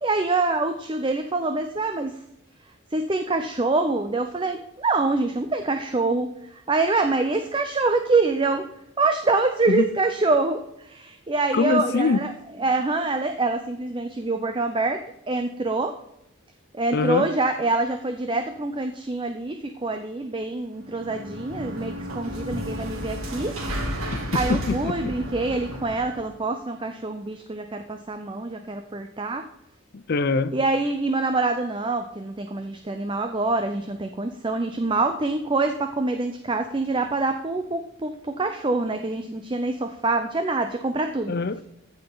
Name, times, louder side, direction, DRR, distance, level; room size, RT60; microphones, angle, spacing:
voice 1, 0.0-2.2 2.9-8.6 9.0-12.3 12.6-15.0 15.3-15.9 16.7-23.6 24.3-29.5 30.5-41.3, right 3 dB, 25° right, 0.5 m, -25 dB
voice 2, 11.5-12.4 16.9-17.3 24.1-25.1 29.9-30.6 41.3-41.6, left 4 dB, 45° left, 0.5 m, -24 dB
sound 1, 20.8-26.3, equal, 80° right, 2.9 m, -32 dB
15.0 x 5.7 x 3.9 m
head